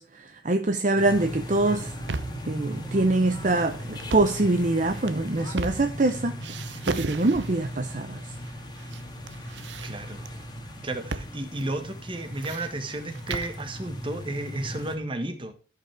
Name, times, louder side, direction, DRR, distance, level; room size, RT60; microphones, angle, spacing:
voice 1, 0.0-1.9 2.5-6.3 6.9-8.2, right 2 dB, 45° right, 0.8 m, -24 dB
sound 1, 0.9-15.0, equal, 25° left, 1.7 m, -38 dB
sound 2, 1.9-2.5 3.9-4.4 4.9-6.1 6.4-7.7 8.4-9.0 9.3-10.3 11.1-11.3 11.6-11.7 12.1-13.6, right 3 dB, 80° right, 0.8 m, -35 dB
voice 2, 9.8-10.2 10.8-15.5, right 2 dB, 30° right, 1.5 m, -33 dB
14.0 x 5.7 x 3.4 m
head